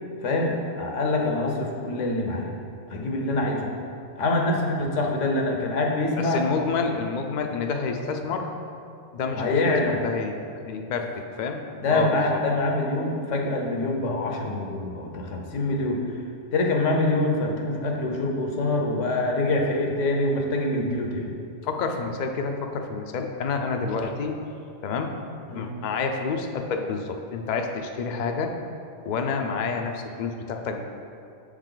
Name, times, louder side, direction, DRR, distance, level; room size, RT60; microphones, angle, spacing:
voice 1, 0.2-2.6 2.9-3.7 4.2-6.4 9.4-10.0 11.8-16.0 16.5-21.3 25.5-25.7, left 2 dB, 80° left, 1 dB, 1.2 m, -25 dB
voice 2, 6.2-8.5 9.1-9.5 10.0-10.3 10.7-11.6 11.9-12.4 21.6-24.3 24.8-25.1 25.5-28.5 29.0-30.8, left 4 dB, 60° left, 4 dB, 0.5 m, -28 dB
7.2 x 4.8 x 3.8 m, 2.5 s
omnidirectional pair, 1.3 m